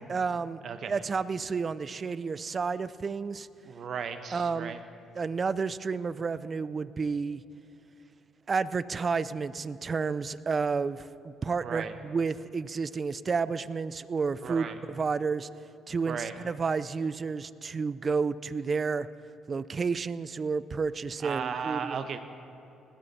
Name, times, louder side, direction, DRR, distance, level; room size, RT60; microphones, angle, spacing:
voice 1, 0.1-0.6 0.9-3.5 4.3-4.7 5.2-7.4 8.5-15.5 15.9-19.1 19.5-22.0, right 5 dB, 40° right, 17 dB, 0.4 m, -31 dB
voice 2, 0.6-1.0 3.6-4.8 11.6-11.9 14.4-14.8 16.1-16.3 21.2-22.2, right 6 dB, 55° right, 9 dB, 1.1 m, -35 dB
19.5 x 13.0 x 4.3 m, 2.8 s
supercardioid pair, 70°, 0 cm